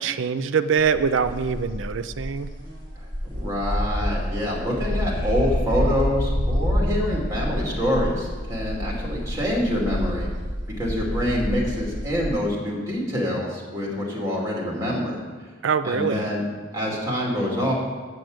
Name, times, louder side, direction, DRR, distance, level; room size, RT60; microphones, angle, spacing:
voice 1, 0.0-2.5 15.6-16.3, right 6 dB, 80° right, 12 dB, 0.5 m, -23 dB
sound 1, 0.8-12.3, equal, 50° right, 2.2 m, -28 dB
voice 2, 3.0-10.3 10.8-15.2 15.8-16.4 16.7-17.7, left 1 dB, 15° right, -3 dB, 2.5 m, -26 dB
7.5 x 6.4 x 7.8 m, 1.4 s
head